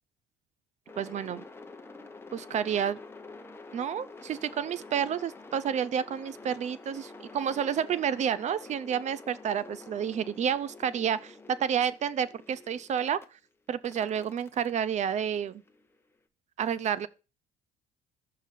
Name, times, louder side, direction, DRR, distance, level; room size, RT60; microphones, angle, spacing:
sound 1, 0.9-13.2 13.8-16.0, left 3 dB, 15° left, 0.8 m, -48 dB
voice 1, 1.0-1.4 2.3-3.0 3.7-13.2 13.7-15.6 16.6-17.1, right 8 dB, 45° right, 0.5 m, -30 dB
6.2 x 3.9 x 5.7 m
cardioid pair, 110°, 17 cm